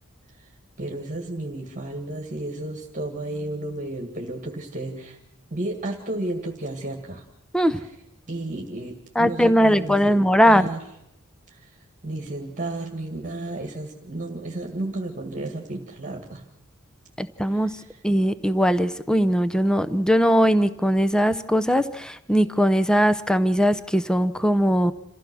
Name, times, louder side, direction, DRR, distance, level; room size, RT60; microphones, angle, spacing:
voice 1, 0.8-5.2 5.5-7.2 7.7-8.0 8.3-10.9 11.5-11.7 12.0-16.5 17.5-18.0, right 2 dB, 35° right, 2 dB, 2.0 m, -33 dB
voice 2, 9.2-10.7 17.2-17.7 18.0-24.9, equal, 5° left, 12 dB, 0.7 m, -20 dB
27.5 x 15.0 x 6.2 m, 0.82 s
head